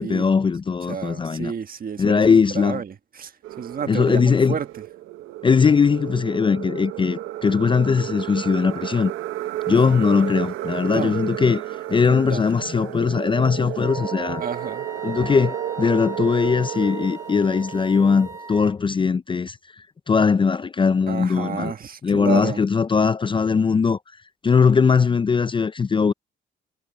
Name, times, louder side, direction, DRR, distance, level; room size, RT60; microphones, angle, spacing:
voice 1, 0.0-1.5 2.0-2.8 3.9-4.6 5.4-9.1 9.7-11.6 11.9-14.4 15.0-19.6 20.1-21.7 22.0-24.0 24.4-26.1, left 5 dB, 25° left, 0.4 m, -20 dB
voice 2, 0.9-4.7 9.7-9.8 10.8-11.2 12.1-12.5 14.4-14.9 21.1-22.6, right 7 dB, 45° right, 1.5 m, -30 dB
sound 1, 3.4-18.6, right 14 dB, 90° right, 1.0 m, -32 dB
Wind instrument woodwind instrument, 13.8-18.8, right 1 dB, 15° right, 1.6 m, -38 dB
cardioid pair, 90°, 20 cm